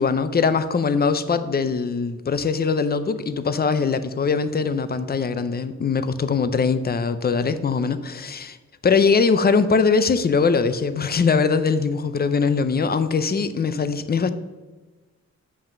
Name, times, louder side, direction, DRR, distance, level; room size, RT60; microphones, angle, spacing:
voice 1, 0.0-8.6 8.8-14.3, left 5 dB, 35° left, 12 dB, 0.5 m, -21 dB
7.5 x 5.6 x 6.6 m, 1.2 s
wide cardioid pair, 160°, 29 cm